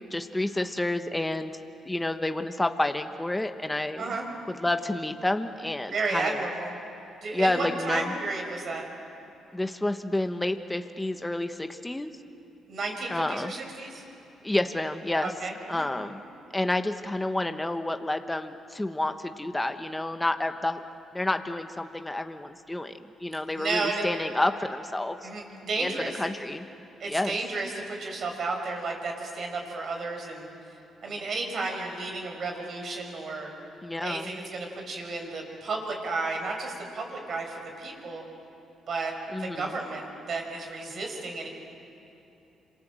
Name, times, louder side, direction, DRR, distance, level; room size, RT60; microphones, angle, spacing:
voice 1, 0.1-1.6 1.8-4.2 4.5-6.4 7.3-8.1 9.5-12.1 13.1-13.5 14.4-15.3 15.7-16.2 16.5-20.8 21.1-22.9 23.2-25.3 25.8-25.9 26.2-26.7 27.1-27.4 33.8-34.3 39.3-39.7, left 1 dB, 10° left, 7 dB, 1.2 m, -29 dB
voice 2, 5.9-6.8 7.2-8.9 12.7-14.0 15.2-15.9 23.5-24.2 25.2-26.2 27.0-30.5 31.0-33.5 34.0-38.2 38.9-41.5, right 3 dB, 55° right, 2 dB, 6.0 m, -32 dB
27.5 x 26.5 x 7.7 m, 3.0 s
cardioid pair, 90°, 0 cm